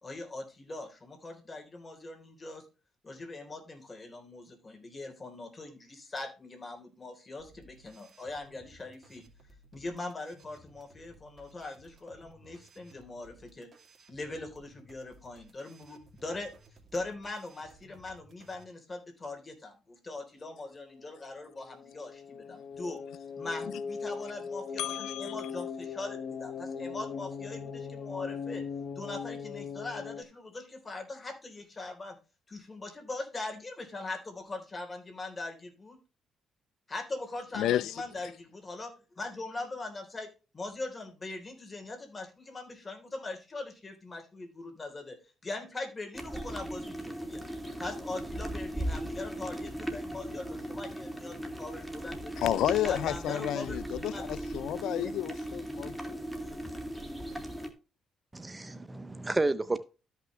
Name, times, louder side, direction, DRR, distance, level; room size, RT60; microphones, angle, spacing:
voice 1, 0.0-2.7 3.0-9.2 9.7-13.7 14.1-16.5 16.9-23.0 23.4-28.6 29.0-32.2 32.5-36.0 36.9-45.2 45.4-47.4 47.8-52.5 52.8-53.8 54.1-54.2, left 2 dB, 25° left, 3.6 m, -41 dB
sound 1, 7.4-18.6, right 1 dB, 35° right, 2.6 m, -59 dB
sound 2, 20.8-30.2, left 6 dB, 60° left, 1.1 m, -40 dB
voice 2, 24.8-25.5 37.6-37.9 52.4-56.0, left 12 dB, 80° left, 0.3 m, -31 dB
sound 3, 46.1-57.7, right 1 dB, ahead, 2.1 m, -38 dB
voice 3, 58.3-59.8, right 2 dB, 20° right, 0.6 m, -31 dB
13.0 x 5.9 x 3.2 m
cardioid pair, 90°, 0 cm